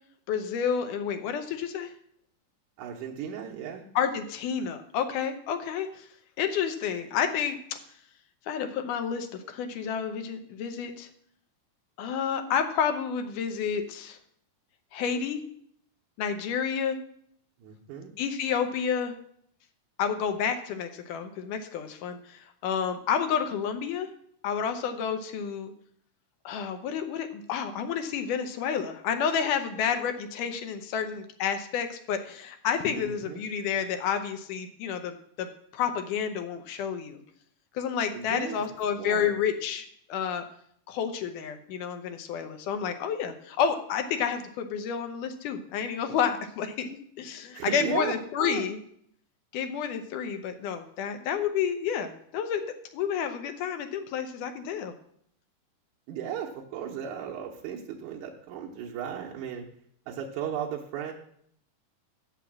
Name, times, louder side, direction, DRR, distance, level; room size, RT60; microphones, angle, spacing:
voice 1, 0.3-1.9 4.0-6.1 6.4-7.6 8.5-11.1 12.0-14.2 14.9-15.4 16.2-17.0 18.2-19.1 20.0-24.1 24.4-25.7 26.5-35.1 35.4-37.2 37.7-40.4 40.9-46.9 47.2-48.8 49.5-52.6 52.9-54.9, left 7 dB, 80° left, 7 dB, 2.2 m, -30 dB
voice 2, 2.8-3.8 17.6-18.1 32.9-33.4 38.1-38.6 39.0-39.3 47.5-48.7 56.1-59.7 60.1-61.1, right 9 dB, 80° right, -2 dB, 2.2 m, -35 dB
7.1 x 5.9 x 7.3 m, 0.66 s
omnidirectional pair, 3.7 m